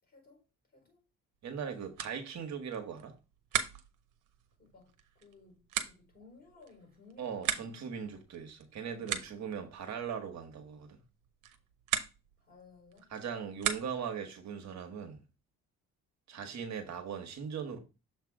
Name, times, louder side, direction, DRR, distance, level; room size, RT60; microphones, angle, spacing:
voice 1, 0.0-0.5 0.7-1.0 4.6-8.0 8.8-9.3 12.4-13.1, left 4 dB, 30° left, 4.1 m, -59 dB
voice 2, 1.4-3.1 7.2-11.0 13.1-15.2 16.3-17.8, right 7 dB, 65° right, 1.3 m, -39 dB
sound 1, 1.4-14.2, right 10 dB, 90° right, 0.8 m, -40 dB
6.9 x 3.3 x 4.8 m
cardioid pair, 90°, 30 cm